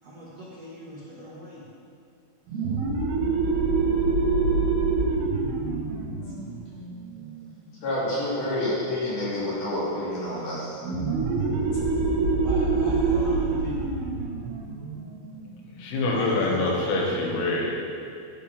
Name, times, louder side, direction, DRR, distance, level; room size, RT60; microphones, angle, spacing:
voice 1, 0.0-1.7 2.5-2.7 12.4-14.0 16.1-17.0, equal, 85° right, -7 dB, 1.4 m, -39 dB
sound 1, 2.5-7.8 10.8-16.1, right 4 dB, 70° right, 2.7 m, -26 dB
voice 2, 7.8-10.8, left 1 dB, 50° left, -8 dB, 4.6 m, -28 dB
voice 3, 15.6-17.8, left 2 dB, 75° left, -2 dB, 4.2 m, -25 dB
15.5 x 11.0 x 3.5 m, 2.6 s
omnidirectional pair, 5.9 m